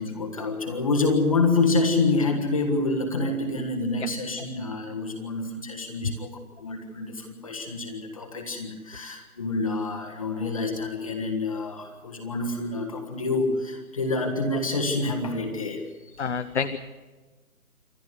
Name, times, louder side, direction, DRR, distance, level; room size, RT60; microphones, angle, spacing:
voice 1, 0.0-16.3, left 3 dB, 25° left, 2 dB, 1.6 m, -27 dB
voice 2, 16.2-16.8, left 5 dB, 50° left, 9 dB, 0.9 m, -27 dB
27.5 x 11.5 x 9.5 m, 1.3 s
hypercardioid pair, 175°, 44 cm